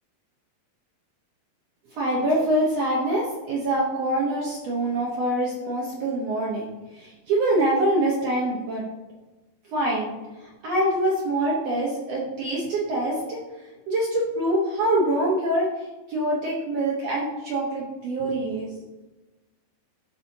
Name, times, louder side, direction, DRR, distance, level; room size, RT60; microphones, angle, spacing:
voice 1, 1.9-8.8 9.7-10.1 10.4-13.4 13.9-18.7, right 1 dB, 70° right, -4 dB, 1.5 m, -25 dB
12.0 x 4.2 x 2.8 m, 1.1 s
omnidirectional pair, 4.5 m